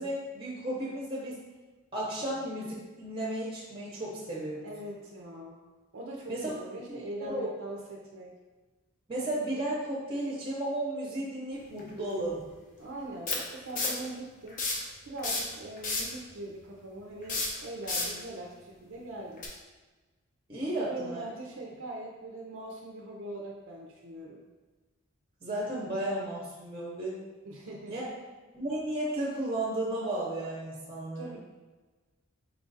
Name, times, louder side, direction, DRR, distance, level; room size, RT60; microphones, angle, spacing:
voice 1, 0.0-1.4 1.9-4.6 6.3-6.5 6.9-7.5 9.1-12.5 20.5-21.2 25.4-27.2 27.9-28.0 28.5-31.4, right 1 dB, 25° right, -4 dB, 0.7 m, -34 dB
voice 2, 4.6-5.6 5.9-8.3 12.8-14.6 15.0-19.5 20.6-24.4 27.4-28.0 31.2-31.4, right 1 dB, 75° right, -1 dB, 0.5 m, -42 dB
sound 1, 11.8-11.9 13.3-14.1 14.5-14.9 15.2-16.2 17.2-18.2 19.4-19.5, left 3 dB, 40° left, 0.6 m, -31 dB
4.5 x 2.4 x 3.9 m, 1.3 s
head